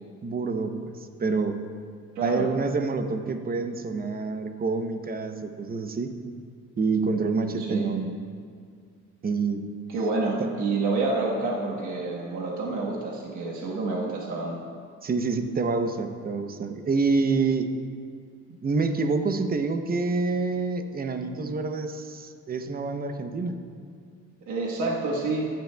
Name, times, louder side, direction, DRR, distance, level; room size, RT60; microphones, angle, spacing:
voice 1, 0.2-1.6 2.2-6.1 6.8-8.1 9.2-9.7 10.4-10.5 15.0-17.7 18.6-23.6, right 4 dB, 30° right, 7 dB, 0.7 m, -27 dB
voice 2, 2.1-2.5 7.6-7.9 9.9-14.6 24.5-25.5, right 3 dB, 75° right, -3 dB, 1.4 m, -28 dB
15.0 x 10.5 x 2.3 m, 2.2 s
cardioid pair, 90°, 30 cm